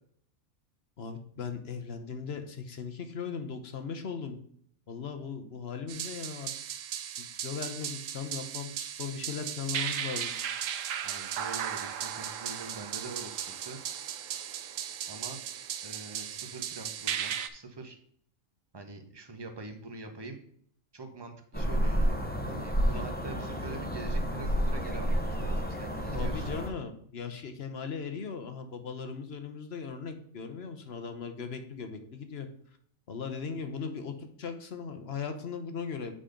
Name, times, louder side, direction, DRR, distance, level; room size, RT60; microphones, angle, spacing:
voice 1, 1.0-4.4 4.9-6.5 7.2-10.3 22.9-23.0 26.1-32.5 33.1-36.1, left 5 dB, 55° left, 7 dB, 1.1 m, -38 dB
sound 1, 5.9-17.5, right 9 dB, 75° right, 1.0 m, -36 dB
voice 2, 11.0-13.8 15.1-15.4 15.8-18.0 18.7-20.4 20.9-26.5, right 3 dB, 20° right, 5 dB, 0.9 m, -44 dB
sound 2, 21.5-26.7, equal, 10° left, 0.7 m, -30 dB
7.6 x 4.2 x 5.0 m, 0.64 s
omnidirectional pair, 1.4 m